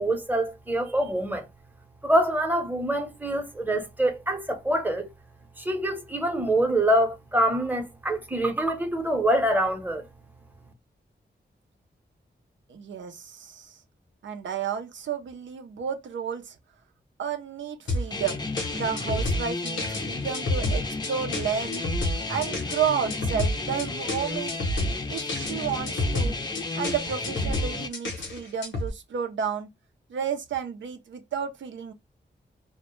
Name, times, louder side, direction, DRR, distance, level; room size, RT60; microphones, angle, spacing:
voice 1, 0.0-1.5 2.0-5.1 5.6-10.1, right 1 dB, 10° right, 0.7 m, -25 dB
voice 2, 12.7-13.8 14.2-16.6 17.2-18.4 18.7-21.9 22.3-24.5 25.1-26.4 26.8-29.7 30.1-31.9, right 7 dB, 80° right, 0.5 m, -31 dB
sound 1, 17.9-28.9, left 1 dB, 80° left, 0.7 m, -29 dB
sound 2, 18.1-27.9, left 3 dB, 20° left, 0.5 m, -33 dB
2.1 x 2.1 x 3.0 m
cardioid pair, 50°, 19 cm